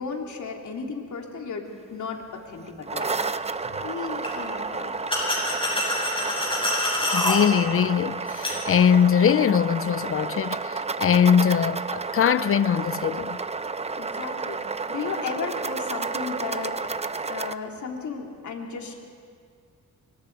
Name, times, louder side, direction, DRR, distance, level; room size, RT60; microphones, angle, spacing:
voice 1, 0.0-3.3 3.8-5.1 14.0-16.7 17.3-19.0, left 5 dB, 75° left, 3.2 m, -34 dB
sound 1, 2.7-17.5, right 4 dB, 20° right, 0.7 m, -31 dB
sound 2, 3.0-3.1 4.2-4.3 5.1-7.4 8.3-8.6, left 1 dB, 15° left, 6.5 m, -26 dB
voice 2, 7.1-13.4, left 8 dB, 45° left, 0.6 m, -21 dB
29.0 x 24.0 x 4.7 m
cardioid pair, 95°, 30 cm